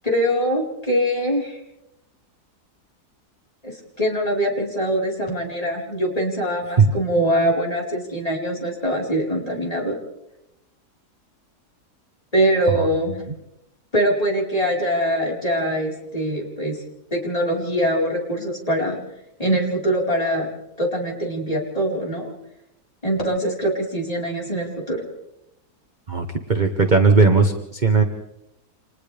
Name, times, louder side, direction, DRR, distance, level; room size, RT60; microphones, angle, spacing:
voice 1, 0.0-1.6 3.6-10.0 12.3-13.2 13.9-16.8 17.1-19.0 19.4-20.5 20.8-22.3 23.0-25.0, equal, 20° left, -2 dB, 4.5 m, -23 dB
voice 2, 26.1-28.0, right 4 dB, 30° right, 5 dB, 1.2 m, -17 dB
29.5 x 26.5 x 3.4 m, 0.86 s
omnidirectional pair, 1.7 m